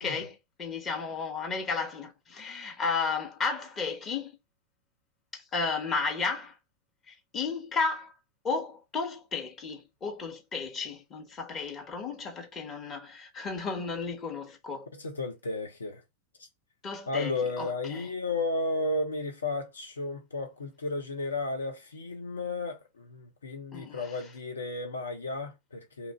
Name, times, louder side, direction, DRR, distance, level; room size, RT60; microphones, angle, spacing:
voice 1, 0.0-4.3 5.3-6.5 7.1-8.1 8.4-14.9 16.8-18.0 23.7-24.2, left 4 dB, 25° left, 1.0 m, -33 dB
voice 2, 14.9-16.0 16.4-16.5 17.1-26.1, left 2 dB, 75° left, 0.7 m, -33 dB
2.8 x 2.4 x 4.3 m
figure-of-eight pair, 90°, 0 cm